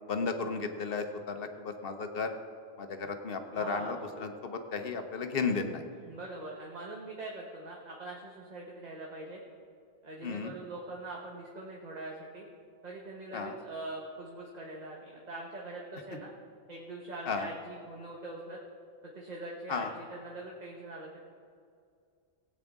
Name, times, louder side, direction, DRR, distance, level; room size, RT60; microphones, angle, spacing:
voice 1, 0.1-2.3 2.8-5.8 10.2-10.5 13.3-13.5 17.3-17.5 19.7-19.9, left 4 dB, 65° left, 7 dB, 1.1 m, -34 dB
voice 2, 3.5-4.0 6.0-9.4 10.0-12.4 12.8-16.3 16.7-18.6 19.1-21.2, right 2 dB, 40° right, -2 dB, 1.2 m, -43 dB
18.0 x 8.9 x 3.6 m, 2.3 s
omnidirectional pair, 1.1 m